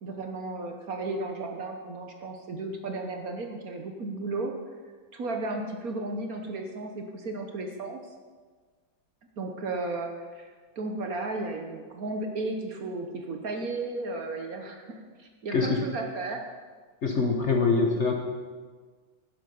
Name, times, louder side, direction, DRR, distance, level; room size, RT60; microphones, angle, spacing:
voice 1, 0.0-4.5 5.1-8.1 9.4-16.4, right 2 dB, 55° right, 4 dB, 1.3 m, -34 dB
voice 2, 17.0-18.1, left 4 dB, 45° left, 2 dB, 1.2 m, -24 dB
11.5 x 10.5 x 5.4 m, 1.5 s
omnidirectional pair, 2.1 m